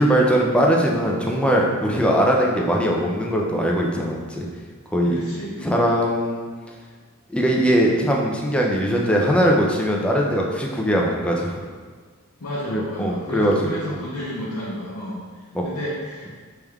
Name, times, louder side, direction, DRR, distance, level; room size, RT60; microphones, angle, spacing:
voice 1, 0.0-4.5 4.9-5.2 5.6-6.5 7.3-11.6 12.7-13.5 13.9-14.0 15.5-15.6, equal, 5° left, -1 dB, 0.5 m, -20 dB
voice 2, 5.0-5.8 12.4-15.2 15.6-16.3, left 1 dB, 70° left, -8 dB, 0.7 m, -31 dB
3.5 x 3.2 x 3.5 m, 1.5 s
head